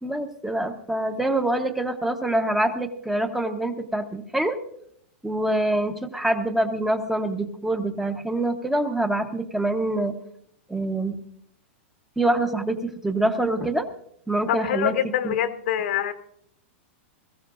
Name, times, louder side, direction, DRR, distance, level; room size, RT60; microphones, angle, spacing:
voice 1, 0.0-4.6 5.2-10.1 10.7-11.2 12.2-13.9 14.3-14.9 15.2-15.3, right 1 dB, 5° right, 6 dB, 1.0 m, -25 dB
voice 2, 14.5-16.1, left 10 dB, 70° left, 9 dB, 1.2 m, -25 dB
21.5 x 14.5 x 2.5 m, 0.70 s
hypercardioid pair, 135°, 7 cm